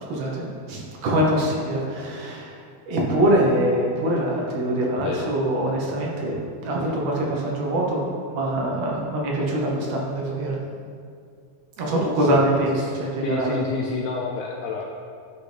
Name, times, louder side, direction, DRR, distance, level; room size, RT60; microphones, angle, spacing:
voice 1, 0.1-2.6 2.9-6.4 6.6-8.0 8.3-10.6 11.8-13.6, right 1 dB, 65° right, -2 dB, 1.9 m, -24 dB
voice 2, 12.7-14.9, left 4 dB, 80° left, -1 dB, 1.5 m, -29 dB
11.5 x 4.0 x 3.3 m, 2.3 s
omnidirectional pair, 3.6 m